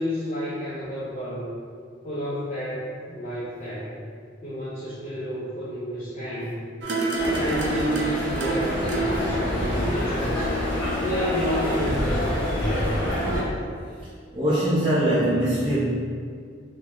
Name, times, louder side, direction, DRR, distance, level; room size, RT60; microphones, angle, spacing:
voice 1, 0.0-1.5 2.0-3.9 4.4-6.6 7.3-10.5 11.0-12.8, equal, 35° left, -10 dB, 0.6 m, -30 dB
sound 1, 6.8-11.9 12.1-12.2, right 2 dB, 65° right, 0.5 m, -31 dB
sound 2, 7.2-13.4, left 1 dB, 75° left, 1.3 m, -27 dB
voice 2, 14.3-15.7, right 1 dB, 25° right, -12 dB, 0.7 m, -22 dB
3.7 x 2.7 x 3.0 m, 2.1 s
head